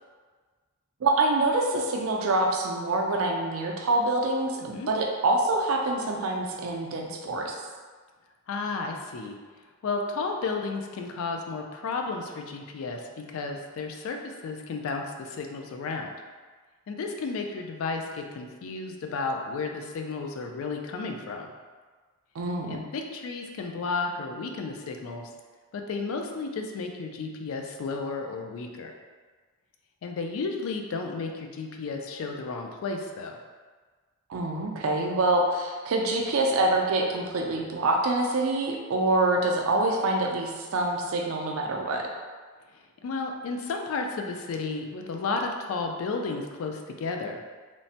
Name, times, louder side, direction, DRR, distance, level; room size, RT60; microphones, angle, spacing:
voice 1, 1.0-7.6 22.3-22.8 34.3-42.0, right 2 dB, 70° right, 1 dB, 0.4 m, -26 dB
voice 2, 8.5-9.4 9.8-16.1 16.9-21.5 22.7-25.3 25.7-28.9 30.0-33.4 43.0-47.4, left 4 dB, 70° left, 3 dB, 0.3 m, -33 dB
3.1 x 2.1 x 2.7 m, 1.5 s
head